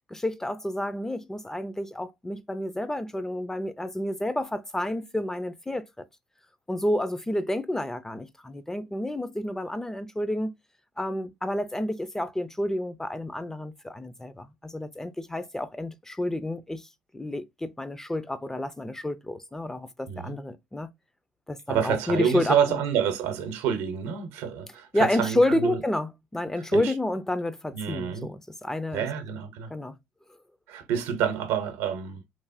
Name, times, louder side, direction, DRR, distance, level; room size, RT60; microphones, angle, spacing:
voice 1, 0.1-6.0 6.7-10.5 11.0-16.9 17.1-20.9 21.5-22.8 24.9-29.1 29.7-30.0, left 1 dB, 10° left, 0.3 m, -29 dB
voice 2, 21.7-25.8 26.6-26.9 27.7-28.3 28.9-29.7 30.7-32.2, right 8 dB, 80° right, 0.7 m, -28 dB
3.0 x 2.1 x 2.4 m
supercardioid pair, 90°, 5 cm